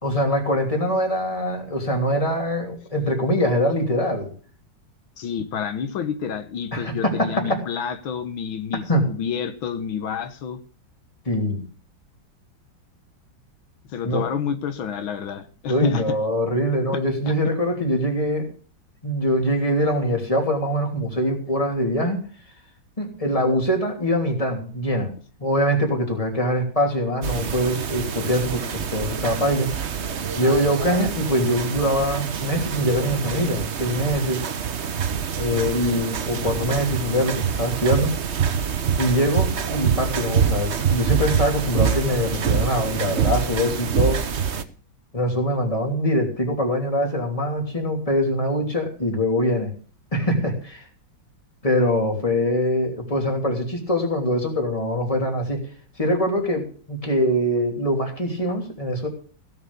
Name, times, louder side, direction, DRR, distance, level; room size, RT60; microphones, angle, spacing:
voice 1, 0.0-4.3 6.7-7.6 8.9-9.0 11.2-11.6 14.0-14.3 15.7-18.5 19.0-22.2 23.0-25.1 25.4-29.7 30.3-34.4 35.4-38.1 39.0-44.2 45.1-49.7 50.1-50.8 51.6-55.6 56.0-59.1, equal, 15° left, 2 dB, 3.1 m, -23 dB
voice 2, 5.2-10.6 13.9-16.2 17.3-17.4, left 7 dB, 85° left, 10 dB, 1.9 m, -29 dB
sound 1, 27.2-44.6, right 7 dB, 45° right, 1.0 m, -26 dB
16.5 x 7.2 x 6.9 m, 0.42 s
omnidirectional pair, 2.1 m